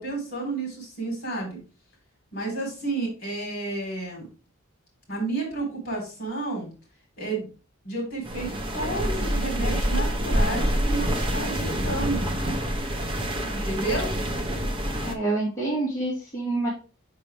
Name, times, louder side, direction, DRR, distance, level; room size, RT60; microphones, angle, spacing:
voice 1, 0.0-1.6 2.3-4.3 5.1-6.7 7.2-7.5 7.8-12.3 13.5-14.1, right 2 dB, 50° left, 0 dB, 3.8 m, -31 dB
sound 1, 8.2-15.1, equal, 25° right, 0.8 m, -26 dB
voice 2, 15.1-16.7, right 2 dB, 15° left, -7 dB, 1.9 m, -27 dB
6.0 x 5.5 x 3.3 m, 0.34 s
head